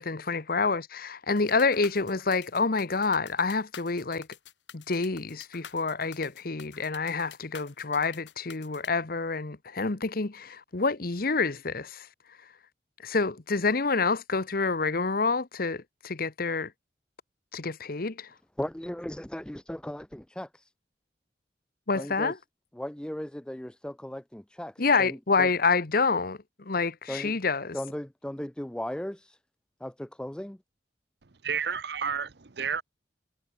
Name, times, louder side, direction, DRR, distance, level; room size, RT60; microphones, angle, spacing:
voice 1, 0.0-4.3 4.7-12.1 13.0-16.7 17.5-18.3 21.9-22.4 24.8-27.8, left 4 dB, 55° left, 1.1 m, -28 dB
sound 1, 1.4-8.9, left 7 dB, 85° left, 3.6 m, -48 dB
voice 2, 18.6-20.7 21.9-22.3 22.8-25.5 27.1-27.3 27.7-29.4 29.8-30.6, left 1 dB, 5° left, 0.4 m, -37 dB
voice 3, 31.2-32.8, right 6 dB, 65° right, 0.9 m, -31 dB
head